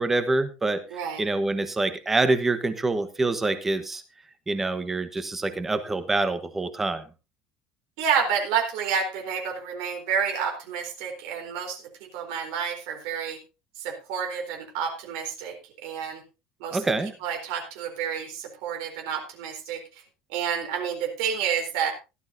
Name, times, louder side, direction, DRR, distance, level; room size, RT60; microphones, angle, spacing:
voice 1, 0.0-4.0 4.5-7.1 16.7-17.1, right 2 dB, 10° right, 10 dB, 1.1 m, -26 dB
voice 2, 0.9-1.2 8.0-13.4 13.8-15.5 15.8-16.2 16.6-16.8 17.2-19.8 20.3-21.9, right 7 dB, 85° right, 1 dB, 4.1 m, -29 dB
16.5 x 12.0 x 2.7 m, 0.29 s
cardioid pair, 170°, 3 cm